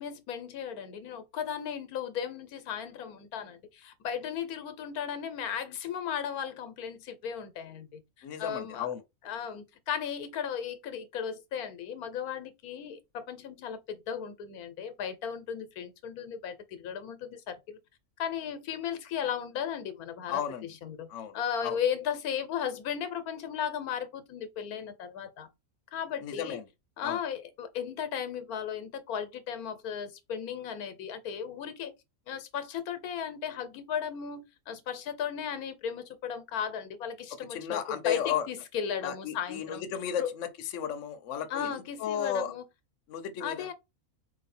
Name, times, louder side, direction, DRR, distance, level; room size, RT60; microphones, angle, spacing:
voice 1, 0.0-8.9 9.2-17.8 18.2-25.5 25.9-26.6 27.0-31.9 32.3-39.8 40.2-40.3 41.5-42.6 43.4-43.7, left 8 dB, 90° left, 1.2 m, -36 dB
voice 2, 8.2-9.0 20.3-20.7 21.1-21.8 26.2-26.6 27.0-27.2 37.5-38.5 39.0-42.5 43.1-43.7, left 9 dB, 65° left, 1.0 m, -34 dB
4.5 x 2.7 x 4.2 m
omnidirectional pair, 1.5 m